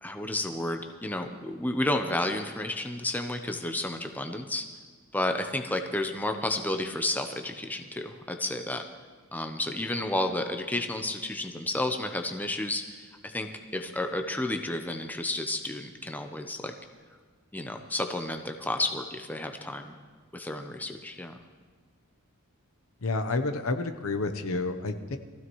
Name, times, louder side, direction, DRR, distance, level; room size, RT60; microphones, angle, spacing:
voice 1, 0.0-4.7 5.1-8.8 9.3-16.7 17.5-19.9 20.3-21.4, left 1 dB, 10° left, 5 dB, 0.7 m, -31 dB
voice 2, 23.0-25.2, left 3 dB, 65° left, 8 dB, 0.9 m, -29 dB
22.0 x 15.0 x 3.1 m, 1.5 s
head